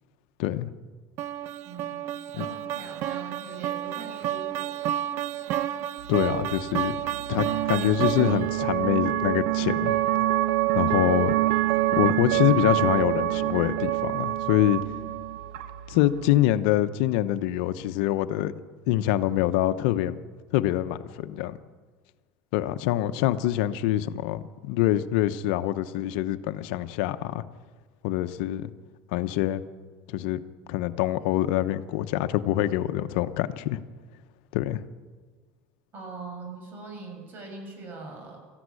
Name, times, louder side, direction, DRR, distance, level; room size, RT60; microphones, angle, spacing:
voice 1, 0.4-0.7 2.4-2.5 6.1-7.0 7.3-10.0 10.7-11.3 11.9-14.8 15.9-18.5 18.9-20.2 20.5-21.6 22.5-27.4 28.0-28.7 29.1-29.6 30.1-30.4 30.7-33.8 34.5-34.8, left 13 dB, 80° left, 11 dB, 0.9 m, -25 dB
sound 1, 1.2-8.6, right 11 dB, 60° right, 0.8 m, -31 dB
voice 2, 1.6-2.0 2.3-4.8 35.9-38.4, right 4 dB, 40° right, 3 dB, 7.4 m, -41 dB
sound 2, 6.0-16.3, right 15 dB, 90° right, 1.0 m, -26 dB
19.0 x 14.5 x 9.8 m, 1.5 s
supercardioid pair, 125°, 5 cm